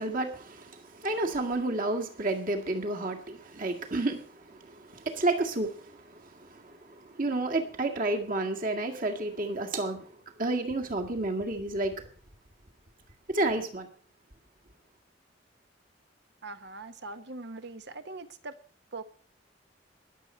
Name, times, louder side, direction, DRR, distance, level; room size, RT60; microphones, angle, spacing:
voice 1, 0.0-10.1 10.4-12.0 13.3-13.9, right 2 dB, 50° right, 2.0 m, -31 dB
voice 2, 16.4-18.5 18.9-19.0, right 3 dB, 65° right, 1.2 m, -41 dB
21.5 x 7.4 x 4.5 m
head